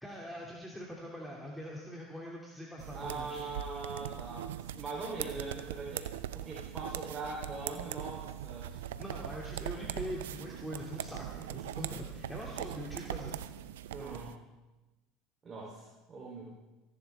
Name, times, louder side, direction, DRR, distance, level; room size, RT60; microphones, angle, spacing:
voice 1, 0.0-3.4 8.7-13.3, equal, 5° left, -3 dB, 2.5 m, -43 dB
sound 1, 2.8-14.4, right 11 dB, 80° right, 0.6 m, -41 dB
voice 2, 2.9-8.7 11.3-11.7 13.9-14.4 15.4-16.5, right 3 dB, 30° right, -4 dB, 3.4 m, -42 dB
28.5 x 11.0 x 3.5 m, 1.1 s
hypercardioid pair, 85°, 0 cm